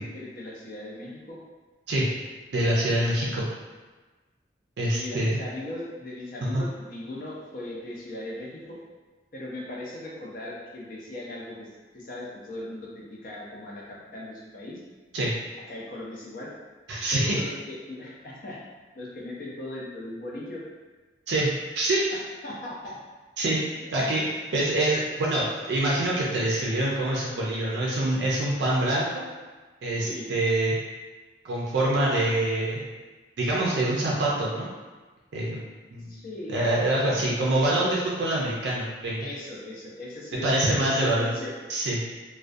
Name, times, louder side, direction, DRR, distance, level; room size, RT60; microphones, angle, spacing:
voice 1, 0.0-1.4 4.8-8.8 9.3-11.7 11.9-14.8 15.7-16.5 17.1-18.6 18.9-20.6 22.1-23.0 23.8-24.0 30.0-30.3 36.1-36.6 39.2-41.5, left 1 dB, 50° left, -4 dB, 0.5 m, -38 dB
voice 2, 2.5-3.4 4.8-5.4 6.5-6.6 15.1-15.3 16.9-17.4 21.3-22.0 23.4-23.6 23.9-29.2 29.8-30.7 31.4-32.9 33.4-34.7 35.3-35.6 35.9-36.2 36.5-39.3 40.4-41.3 41.7-42.0, right 1 dB, 70° right, -4 dB, 0.4 m, -25 dB
2.3 x 2.1 x 2.5 m, 1.3 s
head